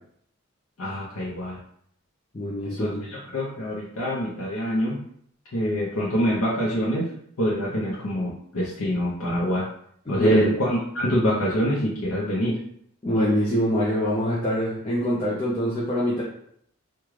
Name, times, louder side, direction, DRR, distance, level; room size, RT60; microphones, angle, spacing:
voice 1, 0.8-1.6 2.6-5.0 5.5-7.1 7.4-9.7 10.1-12.6, equal, 80° left, -5 dB, 0.7 m, -25 dB
voice 2, 2.3-3.0 10.1-10.5 13.0-16.2, equal, 25° left, -5 dB, 0.5 m, -24 dB
3.6 x 2.2 x 3.1 m, 0.68 s
head